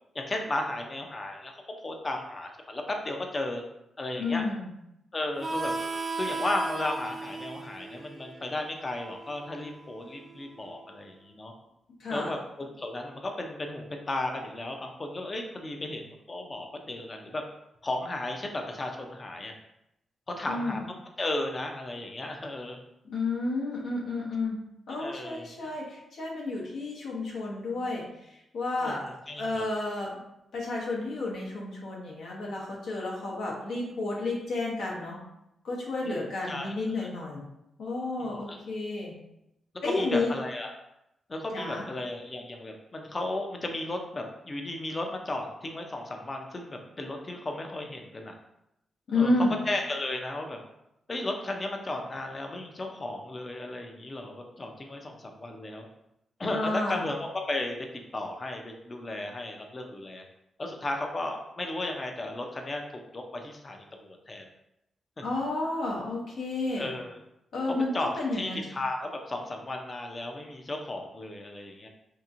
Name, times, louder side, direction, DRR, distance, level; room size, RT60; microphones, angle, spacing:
voice 1, 0.1-3.6 4.0-4.5 5.1-5.7 6.2-11.5 12.1-17.4 17.8-19.5 20.4-20.8 21.2-22.8 24.9-25.5 28.8-29.6 36.0-36.7 38.2-38.6 39.8-40.7 41.3-48.3 49.1-49.3 49.7-50.6 51.1-55.9 56.4-57.8 58.1-60.2 60.6-64.4 65.2-65.3 66.8-67.1 67.7-71.9, left 2 dB, 35° left, 3 dB, 0.5 m, -35 dB
voice 2, 4.2-4.7 12.0-12.3 20.5-20.8 23.1-29.0 29.4-30.2 30.5-35.2 35.6-37.5 37.8-39.1 39.8-40.3 41.5-41.8 49.1-49.5 56.5-57.0 65.2-66.9 67.5-68.6, left 2 dB, 80° left, -4 dB, 0.8 m, -31 dB
Harmonica, 5.4-10.7, right 3 dB, 35° right, 0.4 m, -36 dB
2.9 x 2.6 x 2.5 m, 0.84 s
cardioid pair, 80°, 0 cm